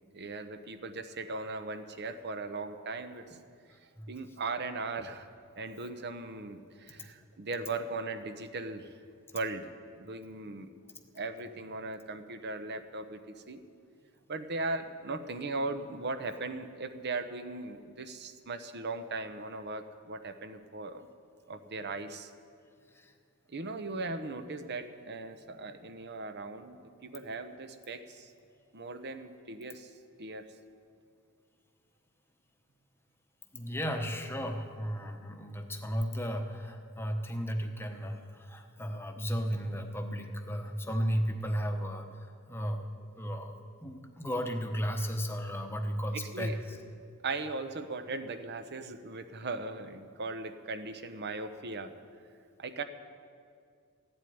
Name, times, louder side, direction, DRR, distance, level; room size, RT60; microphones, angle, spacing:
voice 1, 0.1-3.4 3.8-5.3 5.6-8.9 9.3-9.7 10.0-10.8 11.1-13.6 14.3-21.1 21.5-22.3 23.5-28.3 28.7-30.5 46.1-46.6 47.2-51.9 52.6-52.8, right 3 dB, 50° right, 9 dB, 0.8 m, -38 dB
voice 2, 33.5-42.9 43.2-46.8, equal, 10° left, 4 dB, 1.0 m, -34 dB
15.0 x 8.1 x 9.4 m, 2.3 s
head